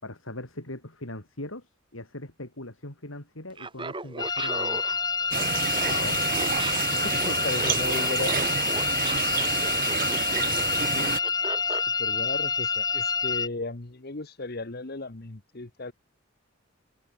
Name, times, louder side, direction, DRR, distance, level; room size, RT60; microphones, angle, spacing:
voice 1, 0.0-4.9 10.4-10.5 10.8-11.2, left 1 dB, 85° left, 5.2 m, -40 dB
Laughter, 3.5-11.9, right 3 dB, 25° right, 2.0 m, -37 dB
sound 1, 4.2-13.5, left 5 dB, 20° left, 1.6 m, -27 dB
sound 2, 5.3-11.2, right 8 dB, 40° right, 0.5 m, -29 dB
voice 2, 5.7-6.3 6.9-8.8 11.7-15.9, left 2 dB, 50° left, 1.2 m, -36 dB
head